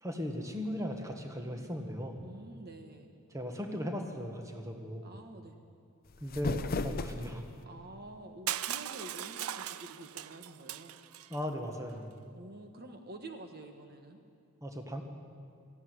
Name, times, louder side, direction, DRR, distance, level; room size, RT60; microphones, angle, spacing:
voice 1, 0.0-2.3 3.3-5.1 6.2-7.5 11.3-12.3 14.6-15.0, equal, 15° right, 4 dB, 1.7 m, -37 dB
voice 2, 2.2-3.1 5.0-5.6 7.7-11.0 12.3-14.2, right 2 dB, 45° right, 5 dB, 1.3 m, -48 dB
sound 1, 6.0-7.7, left 2 dB, 45° left, 0.6 m, -36 dB
Crushing, 8.5-11.4, right 11 dB, 85° right, 0.5 m, -39 dB
18.5 x 15.0 x 9.6 m, 2.4 s
head